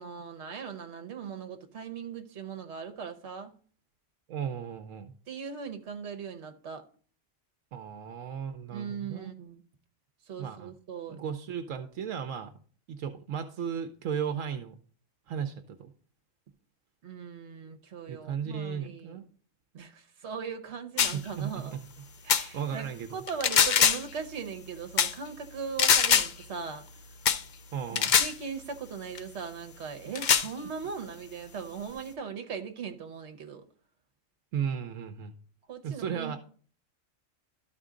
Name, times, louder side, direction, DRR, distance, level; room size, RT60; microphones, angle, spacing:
voice 1, 0.0-3.5 5.3-6.9 8.7-9.6 10.3-11.2 17.0-19.2 19.7-21.7 22.2-26.9 28.1-33.6 35.7-36.4, right 6 dB, 60° right, 1.3 m, -39 dB
voice 2, 4.3-5.1 7.7-9.3 10.4-10.7 11.1-12.5 12.9-14.7 15.3-15.9 18.1-19.3 21.0-21.8 22.5-23.2 27.7-28.1 34.5-35.3 35.8-36.4, right 7 dB, 80° right, 1.1 m, -35 dB
sound 1, 21.0-21.2 22.3-22.5 23.3-24.1 25.0-25.1 25.8-26.3 27.2-27.4 28.0-28.3 29.1-29.2 30.1-30.5, left 7 dB, 55° left, 0.5 m, -23 dB
13.0 x 4.4 x 3.7 m
omnidirectional pair, 1.3 m